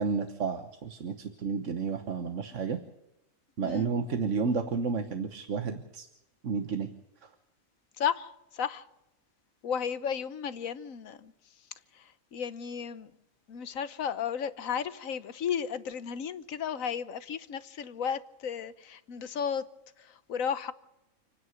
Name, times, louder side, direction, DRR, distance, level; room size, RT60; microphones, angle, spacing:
voice 1, 0.0-2.8 3.6-6.1 6.4-6.9, right 5 dB, 65° right, 1.5 m, -31 dB
voice 2, 3.6-3.9 8.0-8.9 9.6-11.3 11.9-13.1 13.5-19.6 20.0-20.7, left 7 dB, 85° left, 1.4 m, -34 dB
29.0 x 9.8 x 9.2 m
omnidirectional pair, 1.4 m